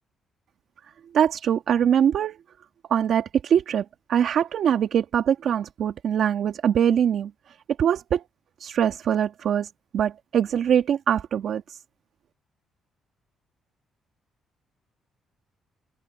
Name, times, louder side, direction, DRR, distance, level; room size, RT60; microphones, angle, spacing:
voice 1, 1.1-2.4 2.9-7.3 7.8-8.2 8.6-11.8, right 9 dB, 65° right, 1.9 m, -23 dB
open air
cardioid pair, 90°, 0 cm